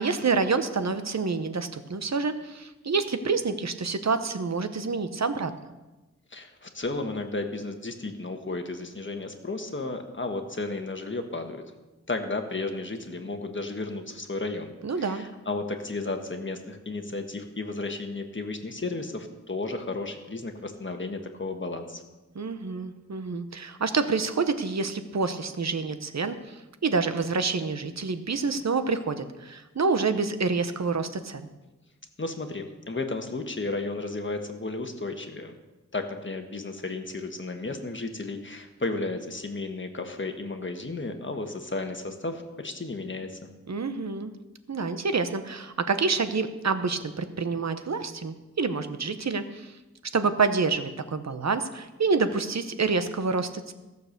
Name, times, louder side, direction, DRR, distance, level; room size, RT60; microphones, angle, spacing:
voice 1, 0.0-5.5 14.8-15.2 22.3-31.5 43.7-44.3 44.7-49.8 50.1-53.7, right 4 dB, 65° right, 10 dB, 0.9 m, -27 dB
voice 2, 6.3-11.6 12.1-22.0 32.2-35.6 35.9-43.5, left 3 dB, 40° left, 5 dB, 1.4 m, -33 dB
14.5 x 6.8 x 6.7 m, 1.1 s
wide cardioid pair, 75°, 29 cm